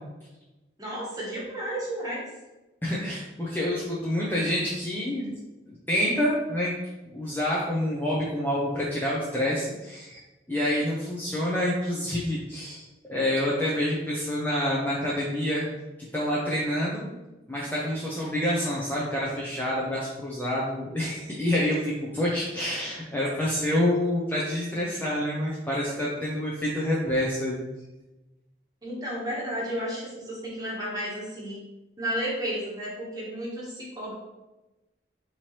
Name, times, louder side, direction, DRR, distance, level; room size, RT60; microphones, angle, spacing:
voice 1, 0.8-2.3 28.8-31.6 32.0-34.1, equal, 20° right, -5 dB, 1.1 m, -32 dB
voice 2, 2.8-5.4 5.7-6.7 7.1-10.2 10.5-15.7 16.1-17.1 17.5-27.7, left 1 dB, 10° left, -6 dB, 0.5 m, -27 dB
4.3 x 2.9 x 3.1 m, 1.1 s
head